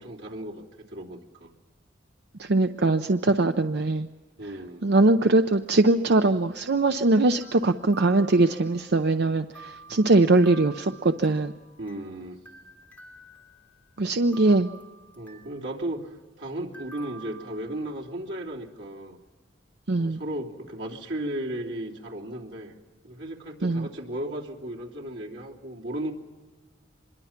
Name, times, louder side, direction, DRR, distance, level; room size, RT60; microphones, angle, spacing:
voice 1, 0.0-1.5 4.4-4.8 9.9-10.0 11.8-12.4 15.2-19.2 20.0-22.7 23.0-26.1, right 1 dB, 90° right, -2 dB, 3.0 m, -35 dB
voice 2, 2.4-4.1 4.8-11.5 14.0-14.7 19.9-20.2 23.6-23.9, right 2 dB, 65° right, 8 dB, 0.7 m, -21 dB
sound 1, 7.3-9.1 9.5-12.1 12.5-13.9 14.3-15.7 16.7-18.2, right 4 dB, 10° left, 3.2 m, -49 dB
25.5 x 22.0 x 5.9 m, 1.4 s
head